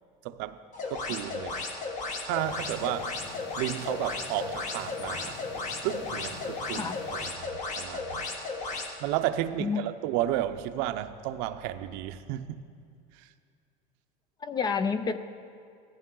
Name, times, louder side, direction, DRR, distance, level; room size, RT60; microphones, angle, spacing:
voice 1, 0.2-0.6 0.9-1.7 2.2-3.2 3.6-5.4 5.8-8.3 9.0-12.7 13.1-13.3, right 13 dB, 70° right, 10 dB, 0.7 m, -33 dB
sound 1, 0.7-8.9, left 3 dB, 45° left, 1.6 m, -35 dB
sound 2, 2.3-7.3, left 4 dB, 80° left, 1.4 m, -47 dB
voice 2, 14.4-15.2, left 5 dB, 25° left, 12 dB, 0.5 m, -29 dB
17.5 x 14.0 x 3.8 m, 2.3 s
cardioid pair, 150°, 18 cm